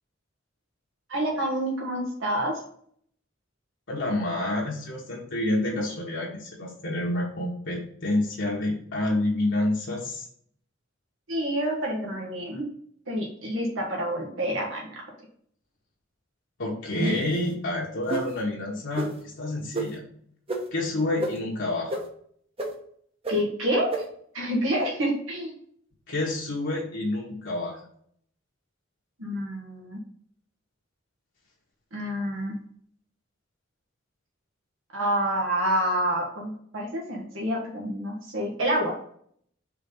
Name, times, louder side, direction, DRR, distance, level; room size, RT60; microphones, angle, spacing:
voice 1, 1.1-2.5 11.3-12.7 13.1-15.0 23.3-23.9 24.3-25.5 29.2-30.0 31.9-32.6 34.9-38.9, equal, 75° right, -1 dB, 1.5 m, -28 dB
voice 2, 3.9-10.3 16.6-20.0 20.7-21.9 26.1-27.8, left 1 dB, 65° left, -4 dB, 1.3 m, -28 dB
sound 1, 16.9-17.4 18.1-18.3 18.9-19.1 19.7-19.9 20.5-20.6 21.2-21.3 21.9-22.0 22.6-22.7 23.2-23.3 23.9-24.0, right 2 dB, 30° right, 1.0 m, -28 dB
5.1 x 3.8 x 5.4 m, 0.63 s
head